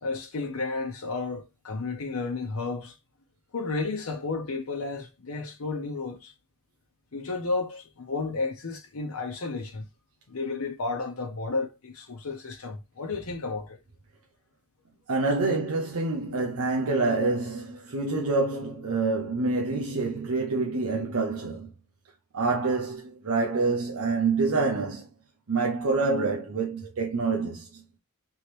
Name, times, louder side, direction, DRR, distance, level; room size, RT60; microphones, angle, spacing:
voice 1, 0.0-2.9 3.5-6.3 7.1-9.8 10.3-13.8, left 3 dB, 70° left, 0.8 m, -32 dB
voice 2, 15.1-21.7 22.3-25.1 25.5-27.8, right 3 dB, 80° right, 0.8 m, -27 dB
3.5 x 3.1 x 3.1 m
head